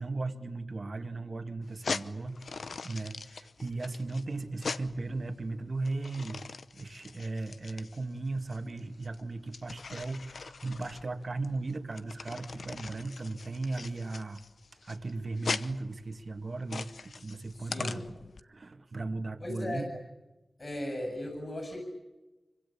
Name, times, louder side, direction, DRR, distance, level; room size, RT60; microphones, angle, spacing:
voice 1, 0.0-6.4 6.7-14.4 14.8-20.0, right 3 dB, 60° right, 7 dB, 2.1 m, -37 dB
sound 1, 1.6-18.4, left 4 dB, 85° left, 0.9 m, -41 dB
voice 2, 17.5-18.0 19.4-19.9 20.6-21.8, left 1 dB, 45° left, 4 dB, 7.3 m, -37 dB
26.5 x 25.0 x 8.6 m, 1.1 s
wide cardioid pair, 65°, 0 cm